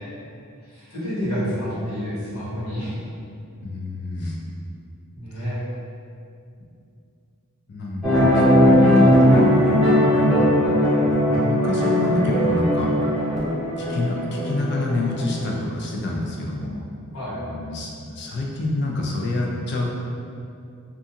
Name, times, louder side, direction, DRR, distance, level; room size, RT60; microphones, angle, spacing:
voice 1, 0.6-2.9 5.1-5.6 17.1-17.4, equal, 80° left, -12 dB, 1.5 m, -29 dB
voice 2, 3.6-4.4 5.4-5.5 7.7-9.9 10.3-10.5 11.0-12.9 13.8-16.8 17.3-19.8, left 2 dB, 50° left, -2 dB, 0.4 m, -27 dB
sound 1, 8.0-15.5, equal, ahead, 0.7 m, -19 dB
2.4 x 2.4 x 2.7 m, 2.5 s
head